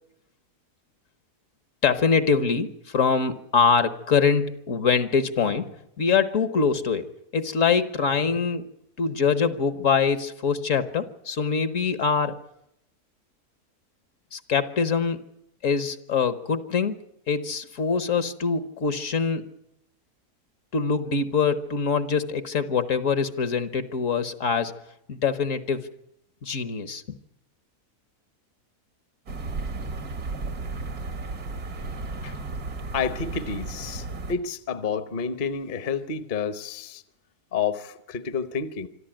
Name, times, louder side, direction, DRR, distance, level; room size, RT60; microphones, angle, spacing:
voice 1, 1.8-7.1 7.3-8.7 9.0-12.4 14.3-15.2 15.6-17.0 17.3-19.4 20.7-24.7 25.1-25.9 26.4-27.2, left 5 dB, 60° left, 1.4 m, -24 dB
sound 1, 29.3-34.3, right 3 dB, 80° right, 2.2 m, -34 dB
voice 2, 32.9-37.0 37.5-38.9, left 6 dB, 40° left, 0.9 m, -29 dB
26.0 x 13.5 x 8.9 m
omnidirectional pair, 1.6 m